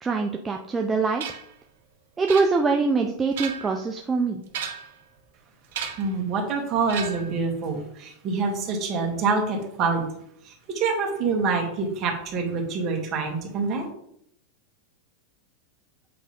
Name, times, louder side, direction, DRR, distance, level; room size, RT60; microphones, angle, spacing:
voice 1, 0.0-1.2 2.2-4.4, right 4 dB, 15° right, 2 dB, 0.6 m, -23 dB
sound 1, 1.2-1.5 2.3-2.9 3.2-3.8 4.5-5.0 5.7-6.1 6.9-7.4, right 7 dB, 70° right, 2.0 m, -34 dB
voice 2, 6.0-10.0 10.4-13.9, right 4 dB, 40° right, 1 dB, 2.3 m, -26 dB
7.9 x 3.7 x 5.2 m, 0.71 s
supercardioid pair, 130°, 0 cm